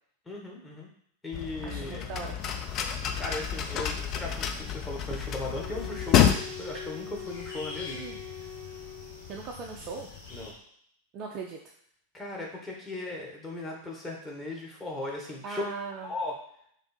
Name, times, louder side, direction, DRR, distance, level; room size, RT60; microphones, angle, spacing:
voice 1, 0.3-0.9 1.2-2.1 3.2-8.0 10.3-10.6 12.1-15.6 16.0-16.3, left 2 dB, 10° left, -3 dB, 1.1 m, -37 dB
sound 1, 1.3-6.4, left 9 dB, 35° left, 0.4 m, -28 dB
voice 2, 1.6-2.4 7.9-8.2 9.3-10.1 11.1-11.6 15.4-16.1, right 4 dB, 35° right, 0 dB, 0.4 m, -38 dB
sound 2, 2.4-10.5, left 4 dB, 55° left, 1.1 m, -46 dB
sound 3, 5.5-9.5, left 8 dB, 70° left, 1.3 m, -42 dB
3.4 x 2.6 x 4.2 m, 0.67 s
figure-of-eight pair, 90°, 0 cm